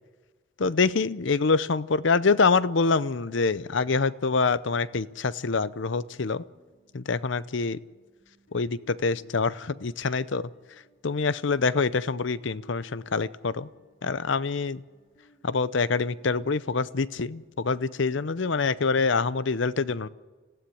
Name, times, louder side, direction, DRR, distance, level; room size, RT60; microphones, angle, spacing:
voice 1, 0.6-6.4 6.9-7.8 8.5-10.5 11.0-13.7 14.0-14.8 15.4-20.1, left 4 dB, 60° left, 17 dB, 0.6 m, -25 dB
sound 1, 6.5-18.6, equal, 40° left, 3.4 m, -60 dB
27.0 x 16.0 x 8.5 m, 1.3 s
head